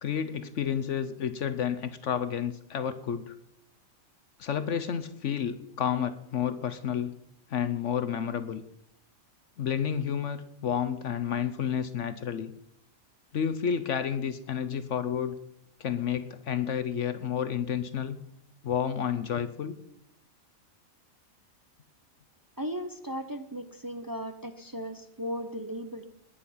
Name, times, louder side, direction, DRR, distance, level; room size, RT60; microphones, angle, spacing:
voice 1, 0.0-3.3 4.4-7.2 7.5-8.6 9.6-12.5 13.3-15.4 15.8-18.2 18.6-19.8, left 8 dB, 65° left, 11 dB, 1.1 m, -30 dB
voice 2, 22.6-26.1, equal, 25° right, 9 dB, 0.4 m, -36 dB
20.0 x 8.4 x 5.7 m, 0.78 s
omnidirectional pair, 1.4 m